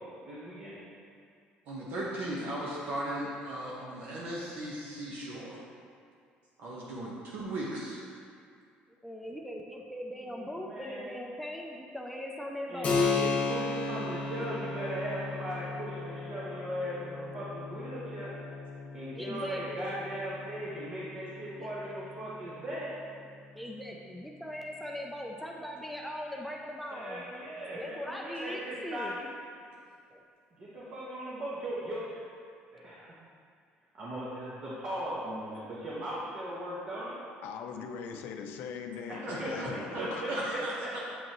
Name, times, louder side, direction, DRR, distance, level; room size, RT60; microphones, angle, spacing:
voice 1, 0.3-0.8 10.2-11.1 12.7-18.3 18.9-22.9 26.4-26.5 26.9-29.3 30.5-32.3 32.8-33.1 33.9-37.2 39.1-41.0, right 1 dB, 40° right, -8 dB, 1.3 m, -38 dB
voice 2, 1.7-5.6 6.6-8.0 39.2-41.0, right 1 dB, 65° right, -5 dB, 1.1 m, -37 dB
voice 3, 9.0-13.0 19.2-19.9 21.6-21.7 23.6-27.3 27.7-29.2 30.1-30.2, left 1 dB, ahead, -1 dB, 0.4 m, -40 dB
Keyboard (musical), 12.8-23.0, left 4 dB, 45° left, 1.0 m, -35 dB
voice 4, 37.4-40.7, left 6 dB, 70° left, 5 dB, 0.5 m, -40 dB
8.3 x 5.2 x 3.0 m, 2.2 s
cardioid pair, 140°, 3 cm